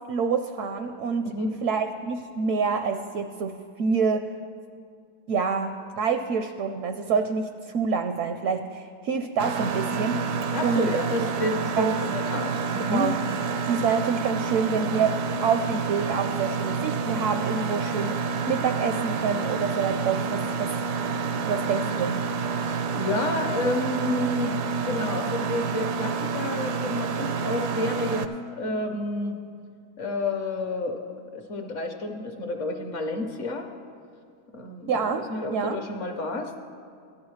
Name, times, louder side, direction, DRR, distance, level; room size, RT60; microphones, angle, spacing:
voice 1, 0.1-1.3 1.6-4.3 5.3-10.9 11.8-11.9 12.9-13.2 13.7-15.2 15.4-20.7 21.2-22.2 34.9-35.2 35.5-35.8, right 5 dB, 70° right, 7 dB, 0.8 m, -27 dB
Mechanisms, 9.4-28.2, right 5 dB, 85° right, 1.2 m, -28 dB
voice 2, 10.5-13.1 22.6-24.5 24.8-28.3 28.6-29.4 30.0-31.0 31.3-33.7 34.5-36.5, left 2 dB, 55° left, 4 dB, 1.0 m, -30 dB
16.5 x 11.0 x 3.2 m, 2.3 s
omnidirectional pair, 1.7 m